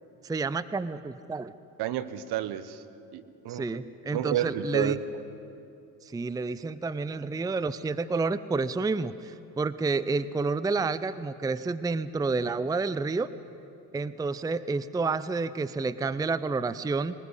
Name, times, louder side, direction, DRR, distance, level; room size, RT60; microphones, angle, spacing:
voice 1, 0.2-1.5 3.5-5.0 6.0-13.3 13.9-17.1, right 3 dB, 10° right, 15 dB, 0.6 m, -29 dB
voice 2, 1.8-2.8 3.1-3.7 4.1-5.0, right 11 dB, 60° right, 13 dB, 1.3 m, -30 dB
21.0 x 19.5 x 8.2 m, 2.8 s
hypercardioid pair, 70°, 44 cm